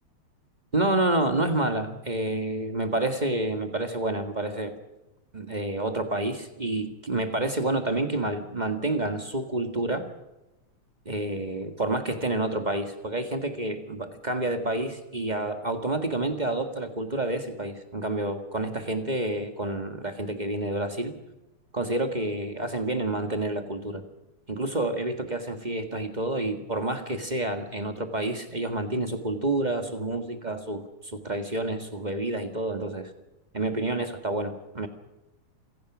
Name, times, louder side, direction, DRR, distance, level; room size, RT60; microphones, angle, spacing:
voice 1, 0.7-4.7 5.3-10.0 11.0-21.1 21.7-24.0 24.5-33.1 33.5-34.9, right 2 dB, 25° right, 7 dB, 1.1 m, -29 dB
27.5 x 17.5 x 6.1 m, 0.98 s
omnidirectional pair, 3.4 m